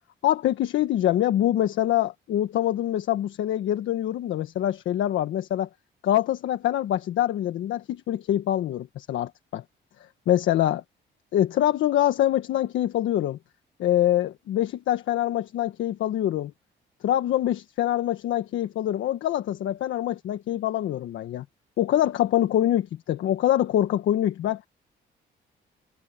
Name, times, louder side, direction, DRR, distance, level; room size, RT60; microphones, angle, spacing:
voice 1, 0.2-5.7 6.0-9.6 10.3-10.8 11.3-13.4 13.8-16.5 17.0-21.4 21.8-24.6, left 12 dB, 75° left, 1.3 m, -24 dB
cardioid pair, 90°, 20 cm